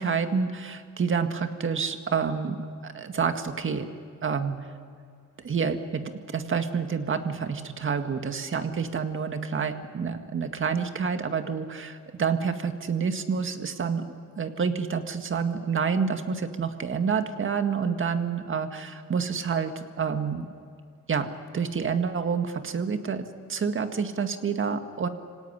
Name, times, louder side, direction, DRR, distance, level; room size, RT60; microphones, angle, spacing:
voice 1, 0.0-2.6 2.8-3.9 4.2-4.6 5.4-6.0 6.3-14.0 14.4-19.7 20.0-20.5 21.1-21.3 21.5-25.1, right 6 dB, 40° right, 7 dB, 2.0 m, -28 dB
25.0 x 17.5 x 10.0 m, 2.2 s
cardioid pair, 90°, 30 cm